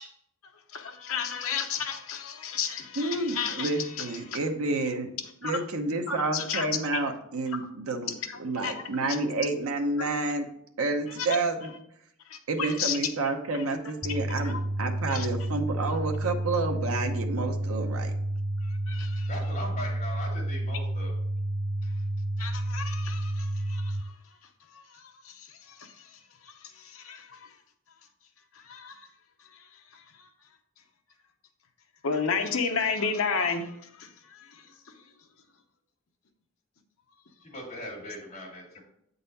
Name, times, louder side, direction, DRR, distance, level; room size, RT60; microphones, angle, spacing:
voice 1, 0.7-4.4 5.4-5.6 6.1-6.7 8.3-8.8 10.0-10.1 11.2-11.3 12.3-13.0 13.5-13.6 14.4-14.6 15.1-15.3 18.9-19.3 22.4-24.1 24.7-26.1 26.4-27.5 28.5-29.1 29.5-29.6 29.9-30.3 32.0-35.0, left 5 dB, 70° left, 0.8 m, -33 dB
voice 2, 3.0-5.1 5.4-8.1 8.4-10.5 10.8-11.7 12.5-18.1, right 3 dB, 75° right, 0.8 m, -29 dB
sound 1, 14.0-24.0, right 1 dB, 15° right, 0.3 m, -30 dB
voice 3, 19.3-21.1 37.4-38.8, left 1 dB, 35° left, 2.3 m, -39 dB
7.9 x 4.0 x 4.1 m
head